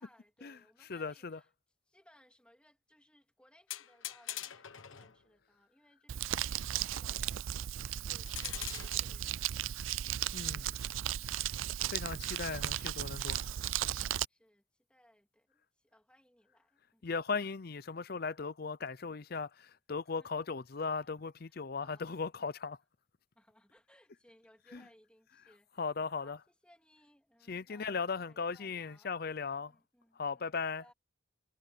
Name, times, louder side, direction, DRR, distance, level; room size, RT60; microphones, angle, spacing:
voice 1, 0.0-1.5 1.9-9.8 14.3-14.6 14.9-17.1 20.1-20.3 20.9-21.1 21.5-22.0 23.3-29.1 29.6-30.9, equal, 5° left, 3.1 m, -66 dB
voice 2, 0.9-1.4 10.3-10.9 11.9-13.5 17.0-22.8 24.7-24.8 25.8-26.4 27.5-29.7 30.2-30.8, left 5 dB, 50° left, 0.6 m, -37 dB
sound 1, 3.7-5.2 8.3-9.0, left 12 dB, 85° left, 1.4 m, -42 dB
Crumpling crinkling, 6.1-14.2, right 11 dB, 85° right, 0.5 m, -36 dB
head